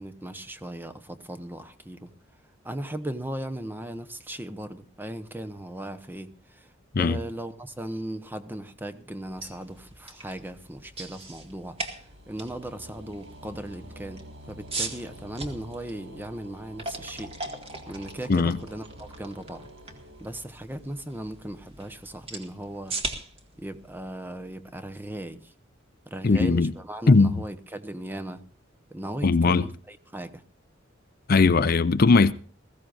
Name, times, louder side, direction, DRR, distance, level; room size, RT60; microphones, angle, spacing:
voice 1, 0.0-2.1 2.6-6.7 7.0-11.8 12.3-17.3 17.9-19.7 20.2-23.0 23.6-25.5 26.1-28.4 28.9-30.4, right 1 dB, 10° right, 0.9 m, -37 dB
sound 1, 9.2-25.1, right 2 dB, 30° right, 2.0 m, -40 dB
sound 2, 10.1-21.0, equal, 65° right, 1.9 m, -49 dB
voice 2, 26.2-26.7 27.1-27.3 29.2-29.7 31.3-32.3, left 4 dB, 50° left, 0.5 m, -19 dB
20.5 x 15.5 x 2.6 m
head